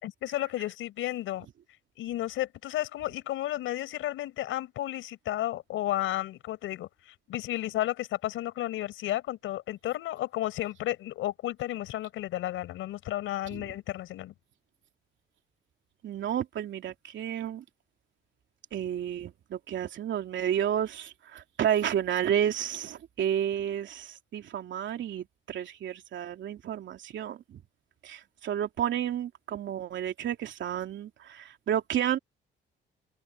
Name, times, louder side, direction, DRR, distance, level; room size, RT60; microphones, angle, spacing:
voice 1, 0.0-1.5 2.0-14.3, left 14 dB, 85° left, 5.1 m, -33 dB
voice 2, 16.0-17.6 18.7-27.6 28.0-32.2, right 10 dB, 70° right, 3.0 m, -31 dB
cardioid pair, 90°, 20 cm